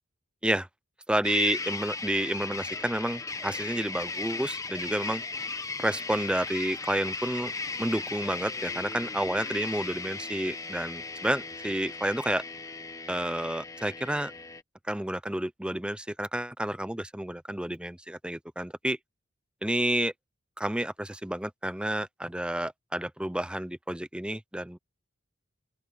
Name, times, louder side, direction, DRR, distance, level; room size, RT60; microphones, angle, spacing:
voice 1, 1.1-5.2 5.8-7.5 7.8-12.4 13.1-14.3 14.9-19.0 19.6-20.1 20.6-24.8, right 1 dB, 5° right, 0.6 m, -30 dB
sound 1, 1.2-14.6, left 3 dB, 15° left, 1.0 m, -37 dB
open air
head